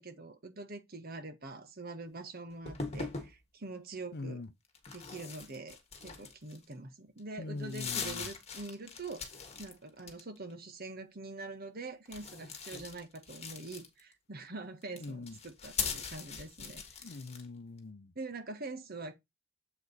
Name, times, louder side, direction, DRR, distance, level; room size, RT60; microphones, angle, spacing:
voice 1, 0.0-4.4 4.9-5.8 6.0-9.3 9.6-16.8 18.1-19.1, right 3 dB, 50° right, 1.5 m, -44 dB
sound 1, 2.7-3.3 4.7-6.7 7.2-7.3 7.6-9.7 10.0-10.5 12.1-14.1 14.8-17.5, left 5 dB, 30° left, 1.8 m, -41 dB
voice 2, 4.1-4.5 7.4-8.3 15.0-15.4 17.0-18.1, left 3 dB, 55° left, 0.7 m, -42 dB
7.9 x 5.0 x 4.0 m
head